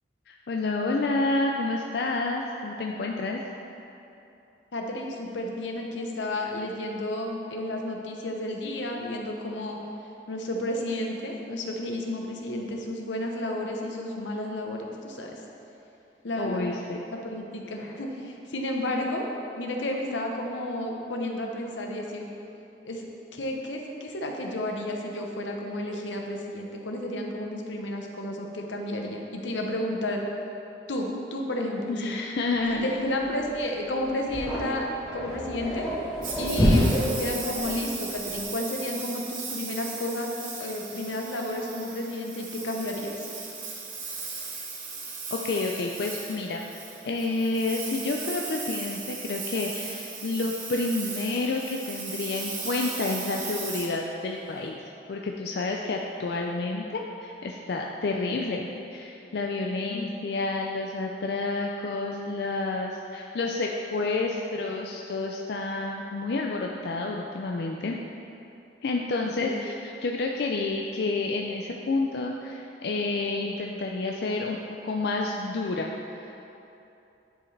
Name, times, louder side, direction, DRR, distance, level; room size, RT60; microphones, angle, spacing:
voice 1, 0.3-3.4 16.4-17.0 31.9-32.9 45.3-46.6 47.0-54.8 55.1-68.0 68.8-74.6 74.8-76.4, left 3 dB, 60° left, 0 dB, 0.4 m, -29 dB
voice 2, 4.7-9.8 10.3-15.4 16.2-16.6 17.1-19.3 19.6-22.3 22.8-23.0 23.3-30.2 30.9-32.2 32.8-34.9 35.1-35.9 36.4-40.3 40.6-43.1 59.8-60.0 69.4-69.6, left 1 dB, 85° left, 1 dB, 0.8 m, -32 dB
sound 1, 32.6-38.5, equal, 5° left, 1.4 m, -27 dB
Engine, 36.2-54.7, right 4 dB, 45° right, 1.0 m, -37 dB
10.0 x 4.7 x 3.3 m, 2.8 s
head